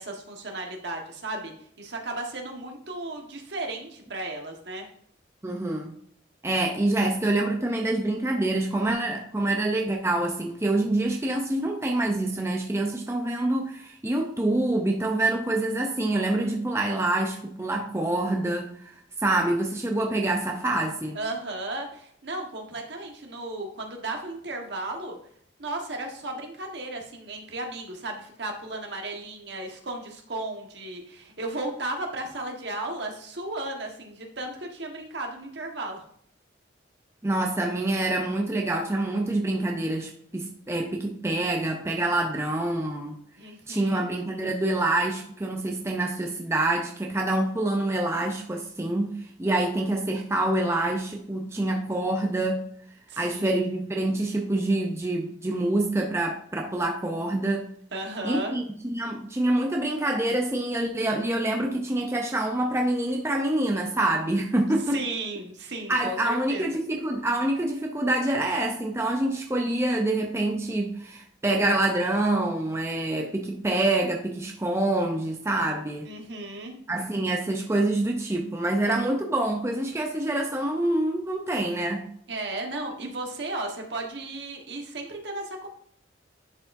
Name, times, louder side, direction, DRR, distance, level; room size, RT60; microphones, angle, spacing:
voice 1, 0.0-4.9 21.1-25.2 25.6-36.0 43.4-44.1 53.1-53.6 57.9-58.5 64.9-66.6 76.0-76.8 82.3-85.7, right 2 dB, 60° right, 2 dB, 1.3 m, -35 dB
voice 2, 5.4-6.0 6.4-21.2 37.2-43.2 43.7-52.6 53.2-57.7 58.2-65.0 65.9-76.1 76.9-82.1, right 2 dB, 15° right, 2 dB, 0.5 m, -26 dB
10.5 x 4.8 x 2.6 m, 0.66 s
head